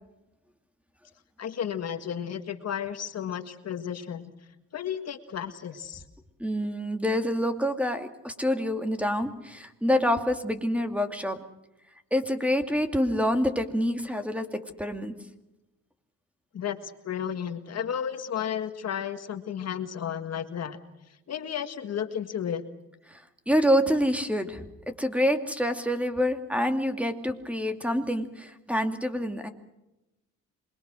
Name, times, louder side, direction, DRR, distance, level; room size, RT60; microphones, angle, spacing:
voice 1, 1.4-4.3 4.7-6.0 16.5-20.8 21.3-22.6, left 8 dB, 55° left, 8 dB, 1.8 m, -33 dB
voice 2, 6.4-11.4 12.1-15.1 23.5-24.7 25.0-29.5, equal, 5° right, 6 dB, 2.4 m, -27 dB
26.5 x 22.0 x 6.3 m, 0.96 s
cardioid pair, 90°, 30 cm